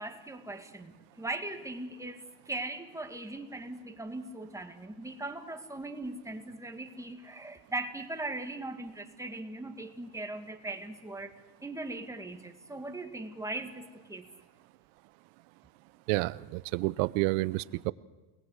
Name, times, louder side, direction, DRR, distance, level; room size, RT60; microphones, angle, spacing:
voice 1, 0.0-14.3, right 2 dB, 5° right, 5 dB, 1.9 m, -39 dB
voice 2, 16.1-17.9, right 21 dB, 90° right, 17 dB, 0.8 m, -29 dB
28.5 x 19.0 x 8.2 m, 1.2 s
cardioid pair, 135°, 48 cm